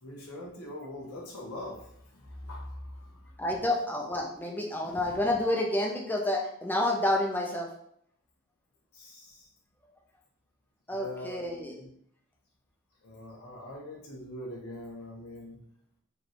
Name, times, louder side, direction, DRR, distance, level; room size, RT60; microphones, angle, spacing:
voice 1, 0.0-3.3 8.9-9.5 10.9-11.5 11.8-11.9 13.0-15.6, left 1 dB, 90° left, -3 dB, 1.1 m, -42 dB
voice 2, 3.4-7.7 10.9-11.8, left 1 dB, 10° left, 0 dB, 0.6 m, -29 dB
5.1 x 3.2 x 3.0 m, 0.68 s
head